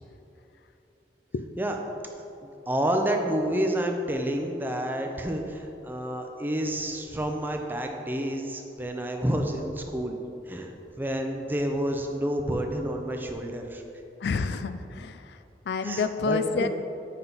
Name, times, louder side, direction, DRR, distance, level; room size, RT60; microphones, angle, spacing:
voice 1, 2.4-10.2 10.5-10.7 11.0-13.8 15.8-16.7, right 1 dB, 10° right, 3 dB, 0.5 m, -29 dB
voice 2, 14.2-16.7, left 4 dB, 75° left, 10 dB, 0.3 m, -29 dB
7.9 x 5.6 x 3.9 m, 2.9 s
head